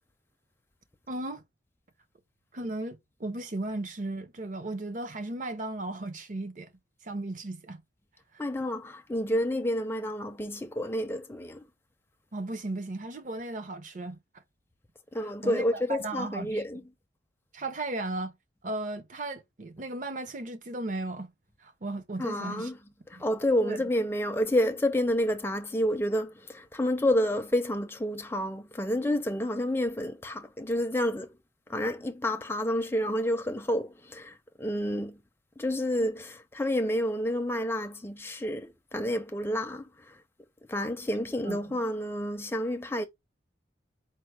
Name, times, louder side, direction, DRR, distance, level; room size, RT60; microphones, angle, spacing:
voice 1, 1.1-1.4 2.5-6.7 7.0-7.8 12.3-14.2 15.4-16.6 17.5-18.3 18.6-21.3 21.6-22.7 23.6-23.8 41.4-41.6, right 2 dB, 45° right, 0.6 m, -35 dB
voice 2, 8.4-11.6 15.1-16.8 22.2-22.8 23.1-31.4 31.7-35.2 35.6-40.2 40.7-43.1, left 1 dB, 15° left, 0.4 m, -29 dB
4.4 x 2.1 x 4.6 m
head